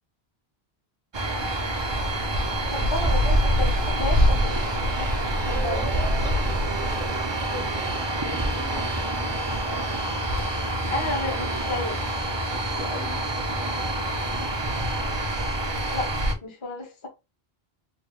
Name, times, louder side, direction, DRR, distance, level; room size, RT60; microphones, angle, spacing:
sound 1, 1.1-16.3, right 1 dB, 35° right, 0.5 m, -26 dB
sound 2, 1.6-8.1, right 7 dB, 90° right, 0.8 m, -38 dB
voice 1, 2.6-4.6 5.0-5.9 10.8-12.0 15.9-16.1 16.4-17.1, left 2 dB, 30° left, 0.8 m, -32 dB
voice 2, 5.7-9.9 12.5-14.6, left 1 dB, 65° left, 1.2 m, -42 dB
3.1 x 2.3 x 3.0 m
omnidirectional pair, 1.0 m